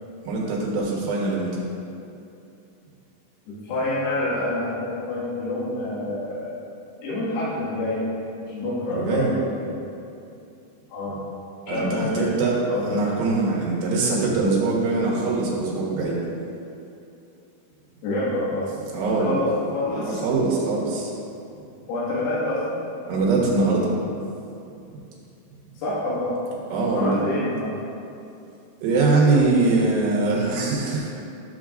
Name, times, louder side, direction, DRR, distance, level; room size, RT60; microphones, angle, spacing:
voice 1, 0.3-1.5 8.9-9.3 11.7-16.2 18.9-19.3 20.1-21.1 23.1-24.0 26.7-27.2 28.8-31.1, right 3 dB, 80° right, -4 dB, 3.5 m, -22 dB
voice 2, 3.5-6.5 7.0-8.0 8.5-9.7 10.9-11.2 11.7-12.3 12.7-13.2 18.0-18.7 19.2-20.2 21.9-22.9 25.8-26.3 26.9-27.7, left 1 dB, 75° left, -9 dB, 4.0 m, -27 dB
13.0 x 7.2 x 2.5 m, 2.6 s
omnidirectional pair, 4.8 m